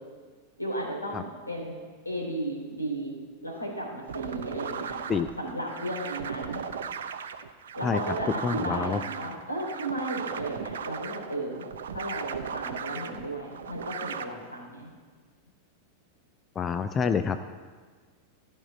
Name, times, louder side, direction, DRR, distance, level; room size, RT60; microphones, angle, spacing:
voice 1, 0.6-1.8 2.0-3.1 3.4-5.0 5.4-6.6 7.7-11.7 11.9-14.9, right 1 dB, 85° left, -1 dB, 3.1 m, -34 dB
sound 1, 4.1-14.2, right 7 dB, 65° right, 0.6 m, -37 dB
voice 2, 8.4-9.0 16.6-17.4, left 6 dB, 20° left, 10 dB, 0.5 m, -27 dB
14.0 x 5.5 x 8.5 m, 1.5 s
figure-of-eight pair, 90°, 0 cm